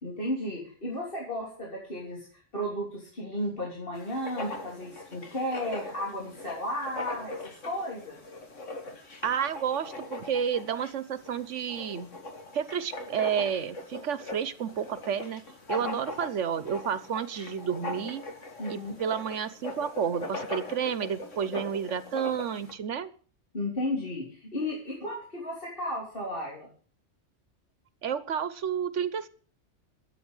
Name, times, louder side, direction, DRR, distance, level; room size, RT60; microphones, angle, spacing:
voice 1, 0.0-8.2 15.8-16.0 18.6-18.9 23.5-26.7, left 1 dB, 50° left, -2 dB, 3.6 m, -34 dB
Writing, 4.0-22.7, left 2 dB, 90° left, 2.4 m, -40 dB
voice 2, 9.2-12.1 12.5-15.4 15.7-18.2 18.7-23.1 28.0-29.3, right 8 dB, 80° right, 15 dB, 1.3 m, -31 dB
13.0 x 8.8 x 8.0 m, 0.41 s
omnidirectional pair, 1.2 m